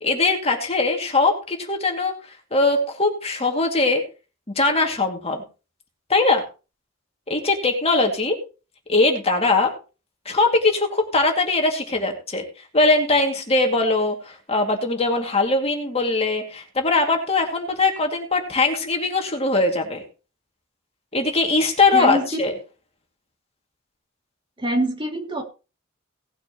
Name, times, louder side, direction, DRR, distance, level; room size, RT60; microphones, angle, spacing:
voice 1, 0.0-2.1 2.5-4.0 4.6-5.4 6.1-6.4 7.3-8.4 8.9-9.7 10.3-12.4 12.7-20.0 21.1-22.5, left 3 dB, 30° left, 3 dB, 2.4 m, -21 dB
voice 2, 21.9-22.4 24.6-25.4, right 1 dB, 25° right, 1 dB, 2.6 m, -24 dB
18.5 x 8.8 x 3.0 m, 0.32 s
head